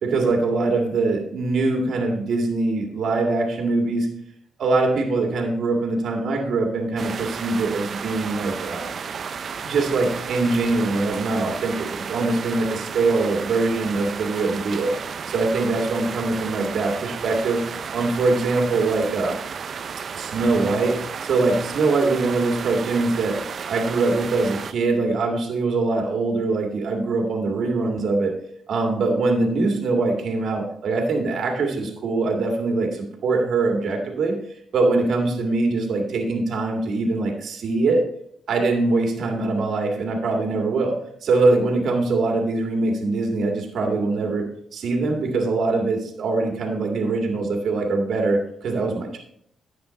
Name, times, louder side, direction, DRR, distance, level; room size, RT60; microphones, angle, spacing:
voice 1, 0.0-4.1 4.6-8.9 9.6-14.9 15.3-17.6 17.9-19.4 20.1-23.4 23.7-28.3 28.7-34.4 34.7-38.0 38.5-44.4 44.7-49.2, right 3 dB, 70° right, 1 dB, 2.1 m, -23 dB
sound 1, 7.0-24.7, right 6 dB, 50° right, 0.5 m, -33 dB
10.5 x 8.0 x 4.1 m, 0.69 s
cardioid pair, 115°, 0 cm